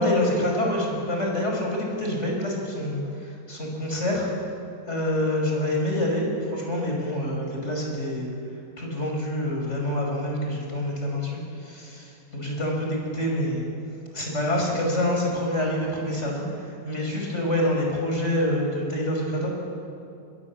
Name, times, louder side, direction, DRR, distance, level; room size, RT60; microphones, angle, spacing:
voice 1, 0.0-4.3 4.9-8.3 8.8-13.7 14.1-19.5, left 1 dB, 35° left, -1 dB, 6.1 m, -26 dB
26.5 x 21.5 x 7.4 m, 2.5 s
omnidirectional pair, 2.1 m